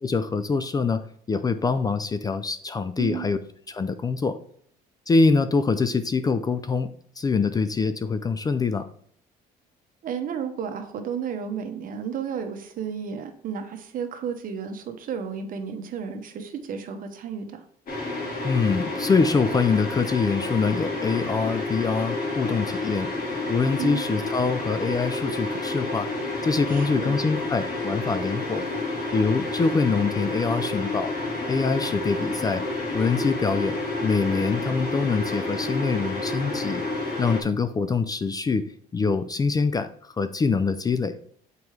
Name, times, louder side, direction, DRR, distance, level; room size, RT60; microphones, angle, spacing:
voice 1, 0.0-3.4 3.7-4.4 5.1-6.9 7.2-8.9 18.4-23.1 23.5-26.1 26.4-28.6 29.1-31.1 31.5-32.6 32.9-33.7 34.0-36.8 37.2-38.6 38.9-39.9 40.2-41.2, left 4 dB, 25° left, 11 dB, 0.4 m, -24 dB
voice 2, 10.0-17.6 23.8-24.0 26.7-27.2, right 7 dB, 55° right, 7 dB, 0.9 m, -32 dB
sound 1, 17.9-37.4, left 2 dB, 60° left, 2.1 m, -30 dB
7.1 x 4.7 x 3.2 m, 0.63 s
cardioid pair, 110°, 17 cm